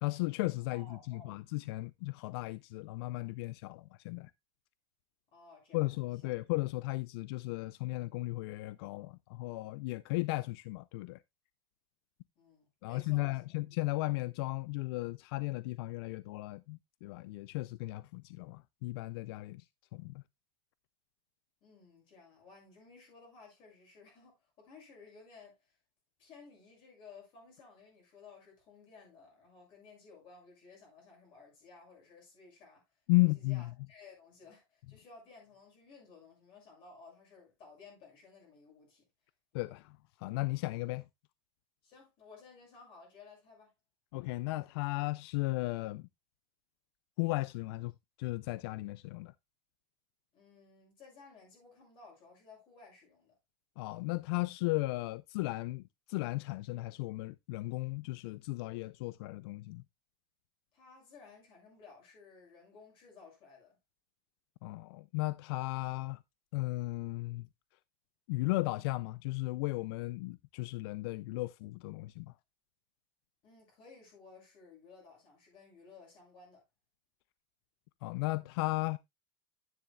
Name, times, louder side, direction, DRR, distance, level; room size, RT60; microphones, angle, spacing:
voice 1, 0.0-4.3 5.7-11.2 12.8-19.6 19.9-20.2 33.1-33.7 39.5-41.0 44.1-46.1 47.2-47.9 48.2-49.3 53.8-59.8 64.6-66.2 66.5-67.5 68.3-72.3 78.0-79.0, left 21 dB, 70° left, 0.4 m, -35 dB
voice 2, 0.7-1.3 5.3-5.9 6.2-6.3 12.4-13.4 21.6-25.7 26.2-32.8 33.2-39.0 41.8-43.7 50.3-53.3 60.7-63.8 73.4-76.6, left 4 dB, 40° left, 6.6 m, -56 dB
10.5 x 9.5 x 2.2 m
cardioid pair, 170°, 13 cm